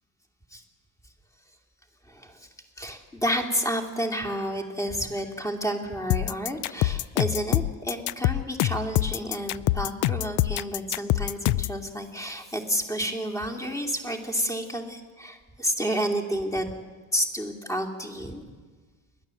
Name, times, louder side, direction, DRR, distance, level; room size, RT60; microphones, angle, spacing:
voice 1, 2.1-2.5 2.8-16.7 17.1-18.4, equal, 10° left, 4 dB, 2.7 m, -30 dB
sound 1, 6.1-11.8, left 16 dB, 55° left, 0.5 m, -25 dB
29.5 x 12.0 x 7.7 m, 1.4 s
supercardioid pair, 115°, 37 cm